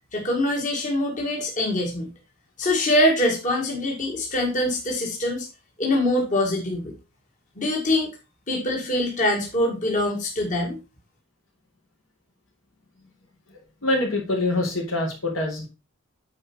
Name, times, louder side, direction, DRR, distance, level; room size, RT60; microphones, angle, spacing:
voice 1, 0.1-2.1 2.6-5.5 5.8-6.9 7.6-8.1 8.5-10.8, left 1 dB, 40° left, -1 dB, 1.9 m, -24 dB
voice 2, 13.5-15.7, left 2 dB, 80° left, 0 dB, 3.8 m, -25 dB
9.7 x 4.5 x 4.5 m, 0.30 s
head